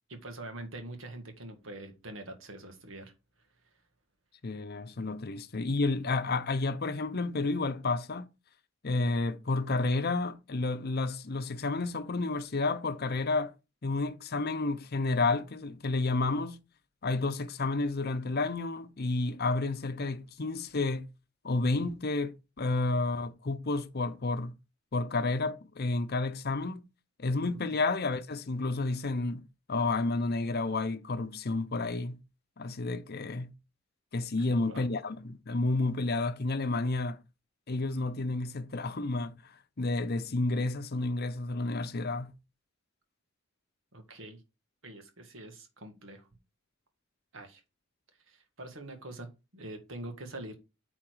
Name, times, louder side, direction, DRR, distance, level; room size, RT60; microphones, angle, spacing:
voice 1, 0.1-3.1 27.7-27.8 34.5-34.9 43.9-44.4 44.8-46.3 47.3-47.6 48.3-50.5, right 2 dB, 65° right, 1.7 m, -44 dB
voice 2, 4.4-8.3 8.8-13.5 13.8-16.6 17.0-21.1 21.4-24.5 24.9-26.8 27.2-29.4 29.7-32.2 32.6-33.5 34.1-37.2 37.7-39.4 39.8-42.3, left 3 dB, 50° left, 0.7 m, -30 dB
8.8 x 4.3 x 4.7 m
head